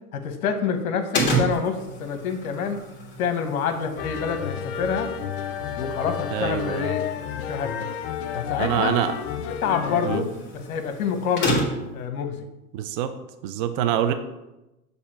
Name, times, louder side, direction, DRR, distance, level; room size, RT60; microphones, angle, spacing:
voice 1, 0.1-2.8 3.2-5.1 5.8-7.0 7.4-7.7 8.3-8.9 9.6-10.3 10.5-11.7 11.9-12.5, left 6 dB, 65° left, 8 dB, 1.1 m, -27 dB
sound 1, 1.1-12.0, right 1 dB, 25° left, 1.5 m, -32 dB
sound 2, 4.0-10.2, left 9 dB, 40° left, 0.4 m, -31 dB
voice 2, 6.3-6.9 8.6-9.1 10.0-10.2 12.7-13.1 13.4-14.1, right 10 dB, 35° right, 9 dB, 0.5 m, -25 dB
6.7 x 2.8 x 5.7 m, 0.98 s
hypercardioid pair, 130°, 45 cm